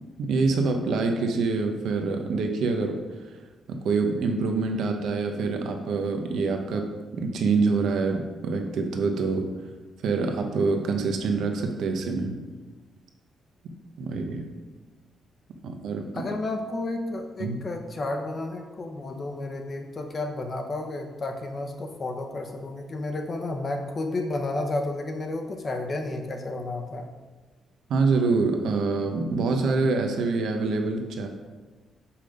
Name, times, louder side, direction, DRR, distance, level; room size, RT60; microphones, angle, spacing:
voice 1, 0.2-3.0 3.7-6.9 7.1-9.5 10.0-12.4 13.6-14.4 15.6-16.2 17.4-17.6 27.9-31.3, right 4 dB, 70° right, 4 dB, 1.0 m, -26 dB
voice 2, 16.1-27.1, left 2 dB, 30° left, 4 dB, 0.8 m, -32 dB
6.9 x 5.7 x 5.2 m, 1.3 s
cardioid pair, 160°, 0 cm